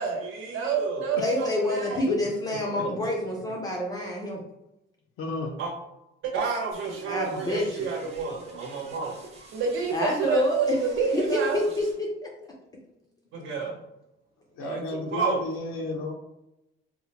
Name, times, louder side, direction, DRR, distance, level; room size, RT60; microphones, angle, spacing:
voice 1, 0.0-2.0 2.8-3.0 5.6-5.7 6.2-11.6 13.3-13.8 14.6-15.4, right 5 dB, 70° right, 1 dB, 0.9 m, -29 dB
voice 2, 1.2-4.4 7.1-7.8 9.9-10.8 11.1-12.3, left 1 dB, 20° left, -2 dB, 0.4 m, -27 dB
voice 3, 5.2-5.5 14.5-16.1, left 3 dB, 80° left, 2 dB, 0.6 m, -32 dB
sound 1, 6.7-11.9, right 2 dB, 30° right, 0.7 m, -48 dB
4.0 x 2.1 x 2.8 m, 0.89 s
cardioid pair, 175°, 21 cm